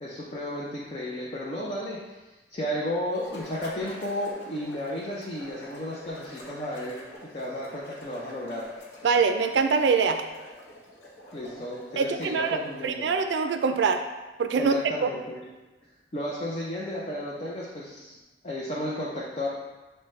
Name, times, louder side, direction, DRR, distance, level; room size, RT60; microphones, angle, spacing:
voice 1, 0.0-2.2 2.5-8.7 11.3-13.1 14.5-15.4 16.1-18.1 18.4-19.5, left 1 dB, 35° left, -5 dB, 0.5 m, -33 dB
sound 1, 3.1-13.0, left 1 dB, 75° left, 0.7 m, -46 dB
voice 2, 9.0-10.2 12.0-14.0 14.4-15.1, right 5 dB, 80° right, 7 dB, 0.3 m, -24 dB
6.1 x 2.1 x 3.1 m, 1.2 s
head